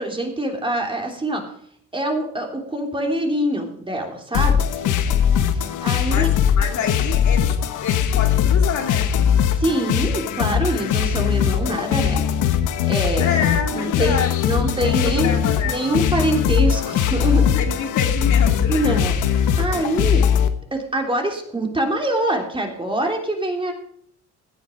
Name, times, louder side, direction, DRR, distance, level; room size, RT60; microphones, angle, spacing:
voice 1, 0.0-1.4 1.9-4.7 5.5-6.3 9.6-12.2 12.8-13.4 13.7-15.4 15.6-17.6 18.7-19.2 19.6-20.3 20.7-23.7, right 1 dB, 15° right, 2 dB, 3.2 m, -24 dB
sound 1, 4.3-20.5, left 8 dB, 90° left, 1.2 m, -20 dB
voice 2, 6.1-7.6 7.8-9.1 13.2-15.8 17.4-18.8, left 6 dB, 70° left, 3 dB, 2.5 m, -27 dB
16.0 x 9.7 x 5.2 m, 0.65 s
cardioid pair, 90°, 30 cm